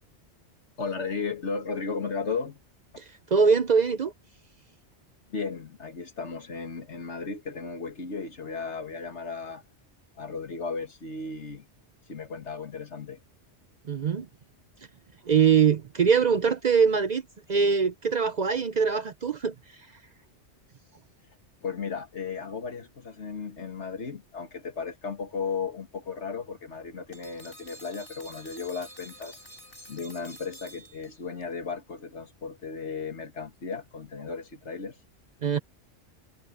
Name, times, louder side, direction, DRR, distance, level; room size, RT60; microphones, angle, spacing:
voice 1, 0.8-2.6 5.3-9.6 10.2-11.7 12.1-13.2 21.6-29.4 29.9-35.0, left 5 dB, 75° left, 2.2 m, -35 dB
voice 2, 3.0-4.1 13.9-14.3 15.3-17.2 17.5-19.5 35.4-35.6, right 6 dB, 50° right, 0.6 m, -23 dB
sound 1, 27.1-31.4, right 1 dB, 50° left, 5.6 m, -49 dB
omnidirectional pair, 1.2 m